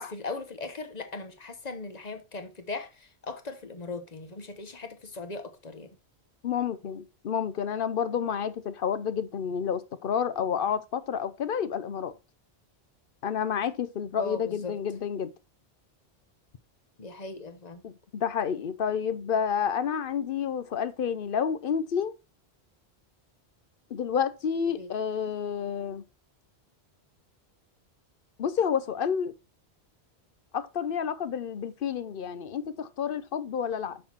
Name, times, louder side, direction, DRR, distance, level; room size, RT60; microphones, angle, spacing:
voice 1, 0.1-6.0 14.2-14.8 17.0-17.8 24.7-24.9, left 3 dB, 40° left, 1.1 m, -39 dB
voice 2, 6.4-12.1 13.2-15.3 17.8-22.1 23.9-26.0 28.4-29.3 30.5-34.0, left 7 dB, 60° left, 0.8 m, -30 dB
6.5 x 5.7 x 4.4 m
omnidirectional pair, 1.1 m